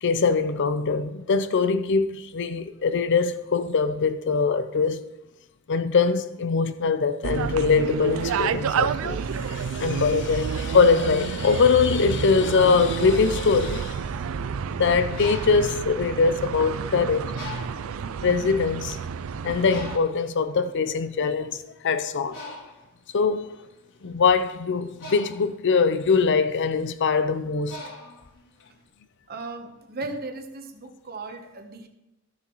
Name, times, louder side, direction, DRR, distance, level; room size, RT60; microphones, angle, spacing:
voice 1, 0.0-5.0 5.7-9.2 9.5-14.0 14.8-17.3 18.2-19.0 19.4-22.4 23.1-23.6 24.0-27.8, left 5 dB, 55° left, 0.5 m, -22 dB
sound 1, 7.2-20.0, right 6 dB, 65° right, 0.4 m, -29 dB
Bird, 15.0-16.8 17.3-18.0 18.7-18.8 19.1-28.8, left 1 dB, 75° left, 3.1 m, -42 dB
voice 2, 29.3-31.9, right 3 dB, 45° right, 1.1 m, -36 dB
14.5 x 7.0 x 3.1 m
head